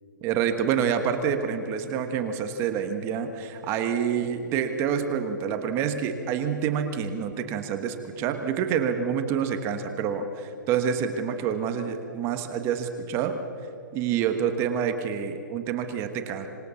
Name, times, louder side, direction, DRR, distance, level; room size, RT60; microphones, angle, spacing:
voice 1, 0.2-13.4 13.9-16.5, right 7 dB, 25° right, 7 dB, 1.4 m, -27 dB
26.5 x 19.5 x 7.1 m, 2.8 s
hypercardioid pair, 155°, 10 cm